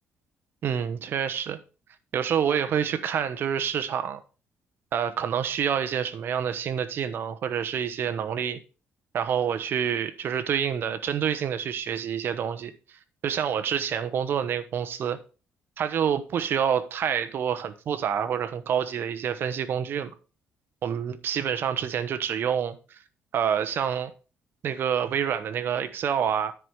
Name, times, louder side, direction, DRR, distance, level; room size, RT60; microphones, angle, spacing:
voice 1, 0.6-1.6 2.1-4.2 4.9-8.6 9.1-12.7 13.2-15.2 15.8-20.1 20.8-23.0 23.3-24.1 24.6-26.5, right 8 dB, 50° right, 1.0 m, -27 dB
10.0 x 4.7 x 5.3 m
cardioid pair, 140°, 5 cm